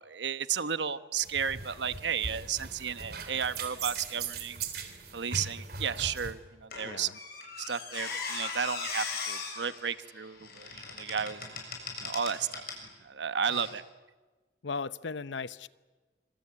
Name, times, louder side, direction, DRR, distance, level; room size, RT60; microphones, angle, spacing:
voice 1, 0.0-4.6 5.1-7.1 7.6-11.5 12.0-12.6 13.0-13.8, right 7 dB, 75° right, 1.0 m, -33 dB
sound 1, 1.2-6.3, right 5 dB, 55° right, 3.4 m, -39 dB
Squeak, 6.7-12.9 13.5-13.7, left 5 dB, 55° left, 7.2 m, -39 dB
voice 2, 14.6-15.7, left 4 dB, 85° left, 0.8 m, -36 dB
25.5 x 25.5 x 8.7 m
head